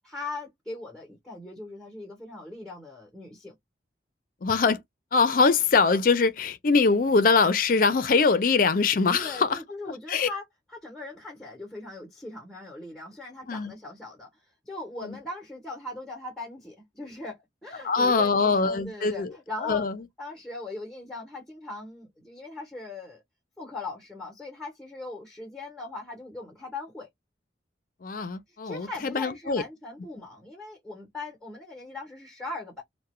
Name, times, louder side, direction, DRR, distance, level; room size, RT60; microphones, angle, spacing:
voice 1, 0.0-3.5 9.1-17.4 17.6-19.8 20.2-23.2 23.6-27.1 28.5-32.8, left 2 dB, 5° left, 0.7 m, -40 dB
voice 2, 4.4-4.8 5.1-9.6 10.1-10.3 13.5-13.7 15.0-15.2 17.8-19.3 19.6-20.0 28.0-29.6, left 4 dB, 45° left, 0.4 m, -23 dB
2.3 x 2.1 x 2.9 m
head